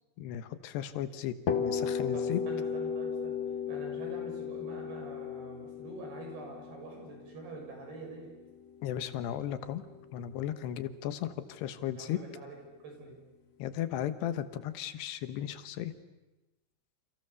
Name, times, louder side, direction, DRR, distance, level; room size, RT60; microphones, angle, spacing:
voice 1, 0.2-2.4 8.8-9.8 10.1-12.2 13.6-15.9, left 11 dB, 85° left, 11 dB, 3.4 m, -35 dB
sound 1, 1.5-9.2, left 6 dB, 50° left, 2.5 m, -35 dB
voice 2, 2.1-3.4 3.7-8.3 11.9-13.2, right 2 dB, 75° right, 1 dB, 8.7 m, -45 dB
29.5 x 29.0 x 7.0 m, 1.1 s
omnidirectional pair, 4.7 m